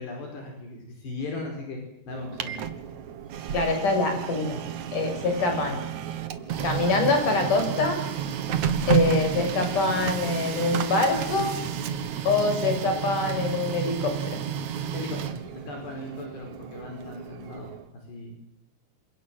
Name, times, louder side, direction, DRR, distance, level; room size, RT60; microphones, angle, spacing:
voice 1, 0.0-1.8 2.1-2.6 3.4-3.5 14.9-15.4 15.7-17.7 18.1-18.4, left 3 dB, 65° left, 2 dB, 6.9 m, -37 dB
Printer, 2.1-17.9, right 8 dB, 60° right, 2.1 m, -31 dB
voice 2, 3.5-4.6 4.9-5.8 6.6-8.0 8.9-11.5 12.2-14.4, left 3 dB, 45° left, 5 dB, 7.7 m, -25 dB
28.0 x 26.0 x 7.7 m, 0.78 s
omnidirectional pair, 5.2 m